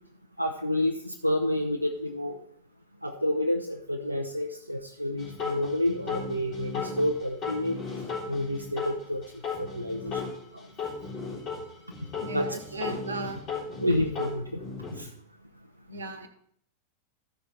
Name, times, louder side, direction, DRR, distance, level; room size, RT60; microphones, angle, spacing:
voice 1, 0.4-2.4 3.0-7.8 8.3-9.2 9.6-10.2 10.5-10.7 12.3-12.8 13.8-14.6 14.9-15.1, left 1 dB, 90° right, 2 dB, 0.7 m, -29 dB
sound 1, 5.2-9.0 9.2-11.6 11.9-15.0, left 5 dB, 35° left, 3.8 m, -35 dB
voice 2, 12.2-13.4 15.9-16.3, right 3 dB, 75° right, 9 dB, 1.3 m, -36 dB
14.0 x 6.1 x 4.4 m, 0.65 s
figure-of-eight pair, 90°, 0 cm